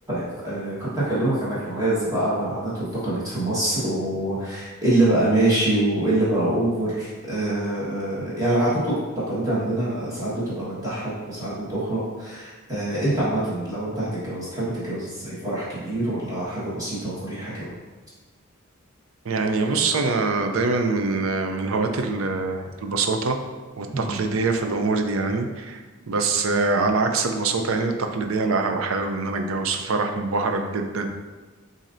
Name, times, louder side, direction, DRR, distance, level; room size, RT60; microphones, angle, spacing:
voice 1, 0.1-17.7 23.9-24.2, right 1 dB, 15° right, -10 dB, 1.4 m, -25 dB
voice 2, 19.2-23.4 23.8-31.1, right 3 dB, 75° right, 5 dB, 0.5 m, -24 dB
7.2 x 2.7 x 2.6 m, 1.3 s
head